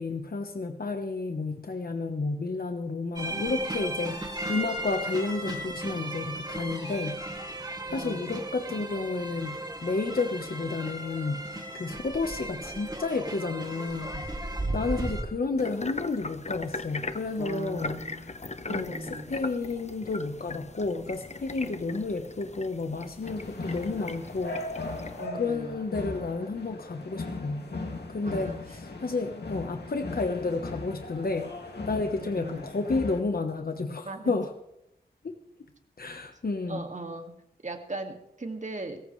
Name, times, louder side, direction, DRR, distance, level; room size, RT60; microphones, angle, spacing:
voice 1, 0.0-18.0 18.6-24.6 25.3-27.7 28.1-34.5 35.2-35.4 36.0-36.8, left 3 dB, 60° left, 5 dB, 1.2 m, -31 dB
sound 1, 3.2-15.2, right 1 dB, 25° right, 2.5 m, -35 dB
voice 2, 7.9-8.4 17.4-18.3 18.7-19.4 21.6-21.8 25.2-25.8 28.2-28.6 32.2-32.7 34.0-34.3 36.1-36.2 36.7-37.3 37.6-39.0, right 2 dB, 45° right, 4 dB, 2.2 m, -39 dB
sound 2, 15.6-25.3, left 3 dB, 40° left, 0.9 m, -40 dB
sound 3, 23.2-33.2, left 3 dB, 80° left, 2.4 m, -38 dB
23.0 x 14.5 x 3.3 m, 0.82 s
wide cardioid pair, 75°, 17 cm